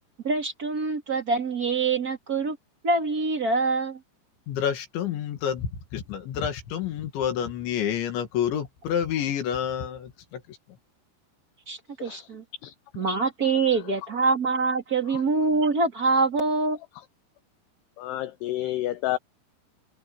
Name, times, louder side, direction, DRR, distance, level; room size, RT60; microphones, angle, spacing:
voice 1, 0.2-2.6 2.8-4.0 11.7-12.4 13.0-16.8, right 4 dB, 30° right, 2.0 m, -25 dB
voice 2, 4.5-10.6, left 9 dB, 75° left, 4.5 m, -29 dB
voice 3, 18.0-19.2, left 15 dB, 90° left, 2.3 m, -30 dB
omnidirectional pair, 5.4 m